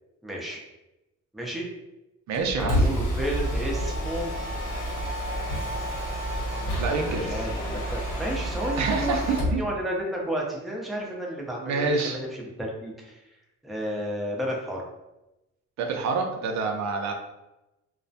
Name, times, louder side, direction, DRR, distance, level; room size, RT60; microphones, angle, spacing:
voice 1, 0.2-0.6 1.3-1.7 2.6-4.3 7.0-7.6 7.9-13.2 13.6-14.8, equal, ahead, -2 dB, 0.5 m, -32 dB
Mechanisms, 2.3-9.6, equal, 90° left, 1.0 m, -29 dB
voice 2, 2.3-2.9 6.8-7.5 8.8-9.6 11.6-12.2 15.8-17.1, right 4 dB, 65° right, 3 dB, 0.5 m, -27 dB
2.3 x 2.1 x 2.6 m, 0.94 s
cardioid pair, 90°, 30 cm